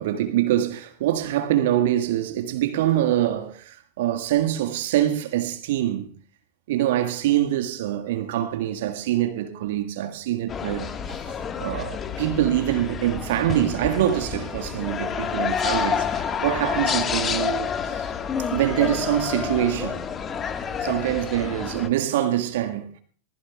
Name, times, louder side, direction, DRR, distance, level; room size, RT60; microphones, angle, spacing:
voice 1, 0.0-6.1 6.7-11.3 11.6-18.0 18.5-20.0 20.8-22.9, right 12 dB, 55° right, 1.7 m, -24 dB
sound 1, 10.5-21.9, left 7 dB, 25° left, 1.5 m, -29 dB
24.5 x 19.5 x 2.3 m
figure-of-eight pair, 90°, 0 cm